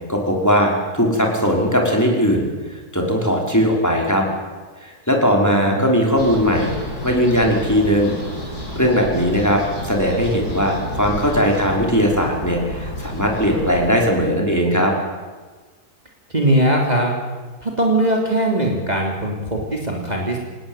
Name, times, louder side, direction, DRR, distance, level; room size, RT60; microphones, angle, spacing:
voice 1, 0.1-2.5 2.9-4.2 4.8-6.7 7.0-8.2 8.8-14.9, equal, 10° left, 0 dB, 5.4 m, -19 dB
voice 2, 5.3-6.1 16.3-17.2 17.6-20.4, right 1 dB, 25° right, 0 dB, 3.5 m, -20 dB
sound 1, 6.2-13.9, left 1 dB, 75° left, 7.1 m, -31 dB
27.0 x 19.0 x 9.2 m, 1.4 s
omnidirectional pair, 1.6 m